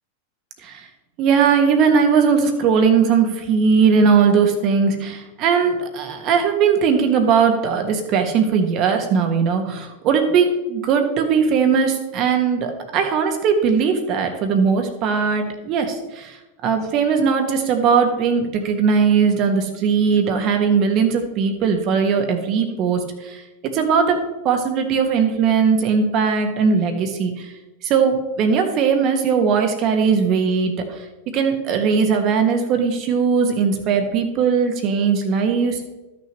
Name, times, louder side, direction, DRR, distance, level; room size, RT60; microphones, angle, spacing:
voice 1, 1.2-16.4 16.6-23.4 23.7-24.2 24.4-27.5 27.8-30.7 31.3-35.9, right 6 dB, 45° right, 5 dB, 1.6 m, -19 dB
13.0 x 6.4 x 3.1 m, 1.1 s
hypercardioid pair, 100°, 0 cm